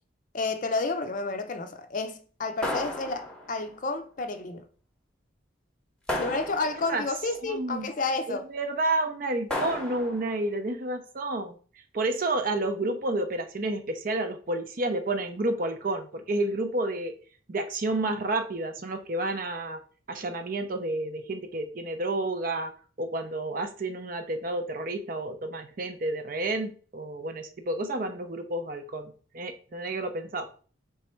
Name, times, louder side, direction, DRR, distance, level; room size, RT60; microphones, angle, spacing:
voice 1, 0.3-4.6 6.1-8.5, left 3 dB, 40° left, 0.5 m, -31 dB
sound 1, 2.6-3.7 6.1-7.1 9.5-10.4, left 1 dB, 5° left, 0.8 m, -33 dB
voice 2, 7.4-7.9 8.3-11.6 11.9-17.1 17.5-19.8 20.1-22.7 23.0-30.5, right 2 dB, 45° right, 0.5 m, -30 dB
3.3 x 3.2 x 4.4 m
head